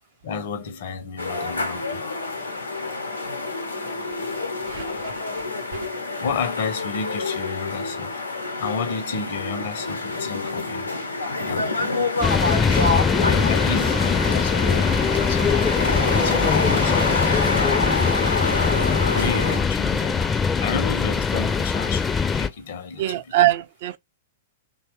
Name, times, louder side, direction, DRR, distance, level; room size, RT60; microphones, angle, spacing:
voice 1, 0.2-2.0 4.7-5.3 6.2-8.2 8.6-10.9 11.4-11.7 12.6-12.8 13.2-15.5 15.9-18.0 19.0-23.2, left 5 dB, 55° left, 0.6 m, -32 dB
sound 1, 1.2-19.6, left 3 dB, 90° left, 0.7 m, -27 dB
voice 2, 4.6-5.5 5.7-5.9 23.0-24.0, right 15 dB, 55° right, 0.3 m, -25 dB
sound 2, 12.2-22.5, left 5 dB, 15° left, 0.4 m, -22 dB
2.9 x 2.2 x 3.1 m
figure-of-eight pair, 105°, 0 cm